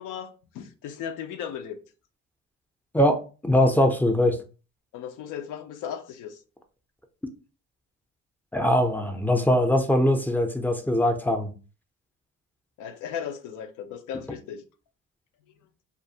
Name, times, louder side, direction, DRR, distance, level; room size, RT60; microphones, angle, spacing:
voice 1, 0.0-1.8 4.9-6.4 12.8-14.6, left 8 dB, 90° left, 0.5 m, -36 dB
voice 2, 2.9-4.4 8.5-11.5, left 1 dB, 5° left, 0.4 m, -22 dB
2.5 x 2.4 x 2.7 m
cardioid pair, 90°, 30 cm